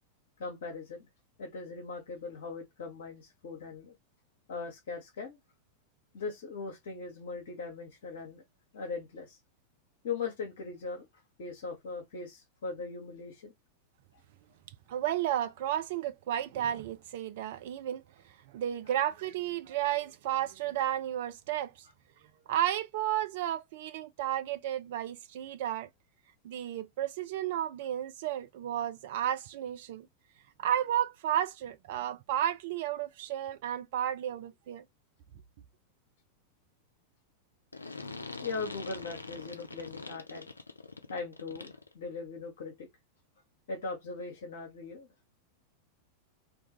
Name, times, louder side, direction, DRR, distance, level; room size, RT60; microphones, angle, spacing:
voice 1, 0.4-1.1 1.4-3.9 4.5-5.4 6.1-8.4 8.7-9.4 10.0-11.1 11.4-13.5 38.4-40.5 41.1-42.9 43.7-45.1, left 4 dB, 60° left, 0.8 m, -39 dB
voice 2, 14.9-21.7 22.5-25.9 26.4-30.1 30.6-34.8, right 11 dB, 50° right, 0.4 m, -33 dB
sound 1, 37.7-41.9, left 3 dB, 80° left, 0.4 m, -43 dB
2.3 x 2.2 x 2.9 m
figure-of-eight pair, 90°, 0 cm